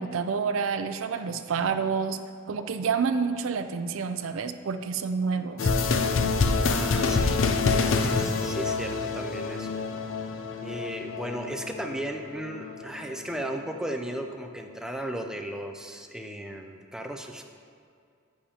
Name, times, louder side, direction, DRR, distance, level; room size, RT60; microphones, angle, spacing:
voice 1, 0.0-2.2 2.5-5.7, right 5 dB, 70° right, 9 dB, 0.4 m, -28 dB
sound 1, 5.6-13.3, left 4 dB, 65° left, 0.5 m, -27 dB
voice 2, 6.6-9.7 10.6-17.4, right 1 dB, 5° right, 3 dB, 0.4 m, -36 dB
10.5 x 8.4 x 2.9 m, 2.3 s
head